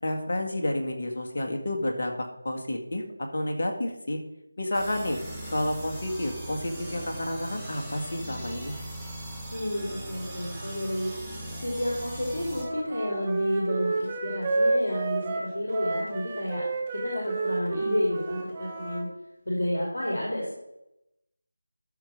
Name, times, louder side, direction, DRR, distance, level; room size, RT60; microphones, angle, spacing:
voice 1, 0.0-3.0 3.3-4.2 4.6-5.2 5.5-8.8, left 1 dB, 50° left, 3 dB, 1.7 m, -30 dB
sound 1, 4.7-12.6, right 1 dB, ahead, 1.7 m, -39 dB
voice 2, 9.5-11.1 11.6-16.6 16.9-19.1 19.4-20.5, left 1 dB, 70° left, -3 dB, 2.8 m, -30 dB
Wind instrument woodwind instrument, 12.5-19.1, right 3 dB, 20° right, 1.2 m, -30 dB
12.5 x 4.7 x 5.2 m, 0.87 s
figure-of-eight pair, 165°, 0 cm